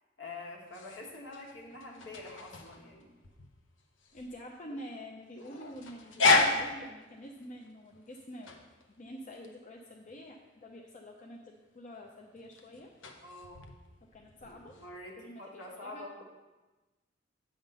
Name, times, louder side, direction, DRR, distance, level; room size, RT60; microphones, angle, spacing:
voice 1, 0.2-3.1 13.2-13.7 14.4-16.2, left 2 dB, 70° left, -1 dB, 1.7 m, -46 dB
sound 1, 0.6-15.0, left 3 dB, 90° left, 0.8 m, -34 dB
voice 2, 4.1-8.6 8.9-12.9 14.1-14.7 15.2-16.2, equal, 40° left, 0 dB, 0.6 m, -47 dB
9.0 x 3.6 x 6.6 m, 1.2 s
head